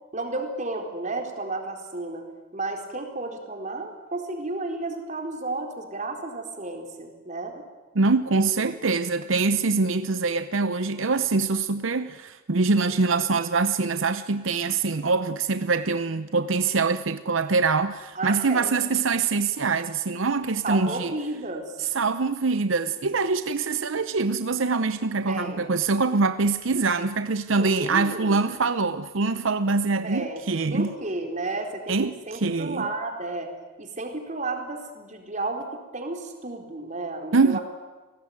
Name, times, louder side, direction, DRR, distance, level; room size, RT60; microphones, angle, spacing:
voice 1, 0.1-2.2 2.5-7.6 18.2-18.7 20.6-21.8 25.3-25.7 27.5-28.4 30.0-30.4 30.7-33.5 33.8-37.6, right 2 dB, 40° right, 4.1 m, -32 dB
voice 2, 8.0-21.1 21.8-30.9 31.9-32.9 37.3-37.6, right 4 dB, 80° right, 0.8 m, -24 dB
28.0 x 18.5 x 9.5 m
head